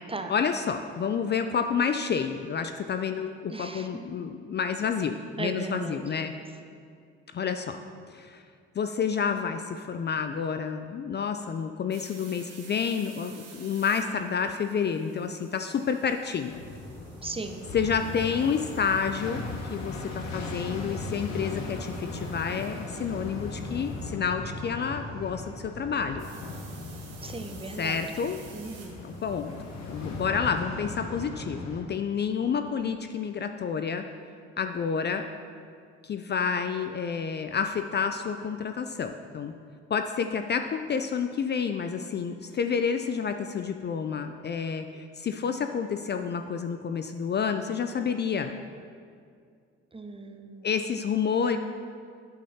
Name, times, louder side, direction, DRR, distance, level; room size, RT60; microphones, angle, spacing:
voice 1, 0.3-6.3 7.3-7.8 8.1-8.4 8.8-16.6 17.7-19.4 19.7-26.3 27.7-28.4 29.0-29.5 29.9-34.0 34.6-35.3 36.0-39.5 39.9-48.5 50.6-51.6, left 6 dB, 35° left, 7 dB, 0.4 m, -29 dB
voice 2, 3.5-3.9 5.4-6.0 17.2-17.7 27.2-28.0 28.5-29.0 49.9-50.7, right 3 dB, 20° right, 6 dB, 0.7 m, -37 dB
sound 1, 11.9-24.1 26.2-30.3, right 6 dB, 55° right, 1.2 m, -54 dB
sound 2, 16.5-31.8, left 2 dB, 65° left, 1.1 m, -38 dB
9.0 x 7.3 x 2.8 m, 2.2 s
hypercardioid pair, 50°, 30 cm